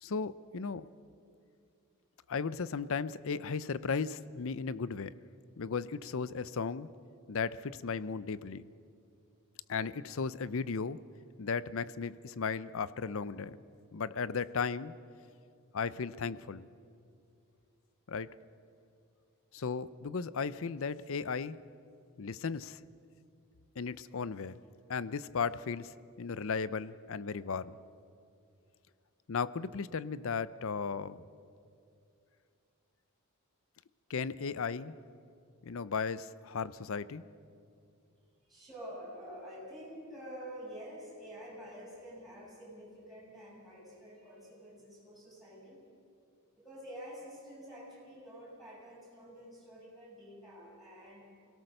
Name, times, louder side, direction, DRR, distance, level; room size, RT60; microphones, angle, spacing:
voice 1, 0.0-0.9 2.3-5.1 5.6-6.9 7.3-8.7 9.7-11.0 11.4-13.6 13.9-14.9 15.7-16.7 18.1-18.3 19.5-21.6 22.2-22.8 23.8-24.6 24.9-27.7 29.3-31.3 34.1-34.9 35.6-37.2, left 5 dB, 60° left, 16 dB, 0.6 m, -35 dB
voice 2, 38.4-45.8 46.6-51.2, equal, ahead, -7 dB, 7.3 m, -48 dB
24.5 x 17.5 x 6.6 m, 2.4 s
head